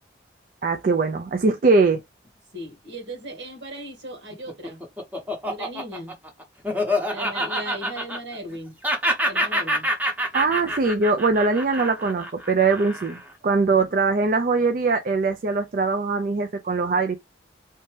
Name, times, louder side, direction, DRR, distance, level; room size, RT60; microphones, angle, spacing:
voice 1, 0.6-2.0 10.3-17.2, right 4 dB, 45° right, 0.4 m, -21 dB
voice 2, 2.5-4.8 5.4-6.2 7.1-8.8 9.3-9.9 13.8-13.9, right 1 dB, 75° right, 1.8 m, -37 dB
Laughter, 4.3-8.6 8.8-13.3, equal, 10° right, 0.8 m, -27 dB
3.3 x 2.7 x 3.2 m
head